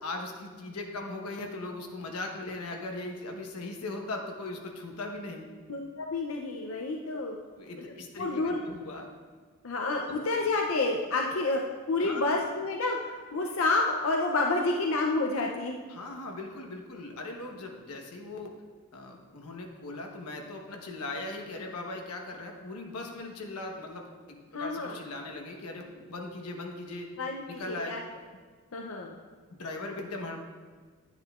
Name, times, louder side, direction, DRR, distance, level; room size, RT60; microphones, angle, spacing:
voice 1, 0.0-5.5 7.6-9.1 10.1-10.2 12.0-12.3 15.9-18.5 18.9-27.1 27.5-27.9 29.5-30.4, left 2 dB, 90° left, 2 dB, 1.1 m, -39 dB
voice 2, 5.7-7.4 8.2-8.6 9.6-15.8 24.5-24.9 27.2-28.0 28.7-29.2, left 3 dB, 65° left, 1 dB, 0.6 m, -29 dB
10.0 x 9.5 x 2.4 m, 1.5 s
head